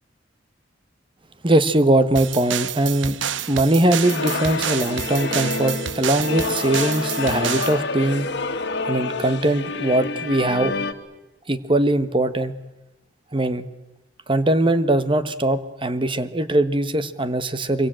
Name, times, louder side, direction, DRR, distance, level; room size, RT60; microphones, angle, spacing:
voice 1, 1.4-3.2 3.5-8.3 8.9-10.8 11.5-12.5 13.3-13.7 14.3-17.9, right 1 dB, 25° right, 12 dB, 1.3 m, -21 dB
sound 1, 2.2-7.8, right 9 dB, 80° right, 0.9 m, -29 dB
sound 2, 4.0-10.9, left 3 dB, 65° left, 2.1 m, -28 dB
25.5 x 23.5 x 9.1 m, 1.0 s
head